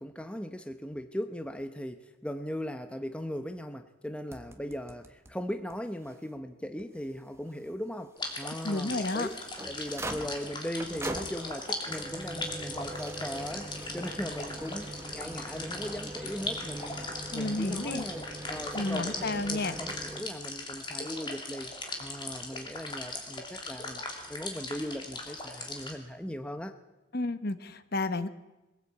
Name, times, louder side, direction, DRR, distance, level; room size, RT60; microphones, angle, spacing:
voice 1, 0.0-9.4 9.7-17.0 17.3-21.7 22.0-24.0 24.3-26.8, equal, 5° left, 8 dB, 0.8 m, -38 dB
sound 1, 4.3-5.3 5.7-5.8 6.0-6.1 6.8-6.9 8.9-20.2, right 2 dB, 10° right, 1.3 m, -42 dB
sound 2, 8.2-25.9, left 2 dB, 20° left, 2.8 m, -39 dB
voice 2, 8.6-9.3 17.3-18.0 18.7-19.8 27.1-28.3, left 2 dB, 50° left, 12 dB, 1.0 m, -31 dB
22.5 x 16.0 x 8.4 m, 1.1 s
head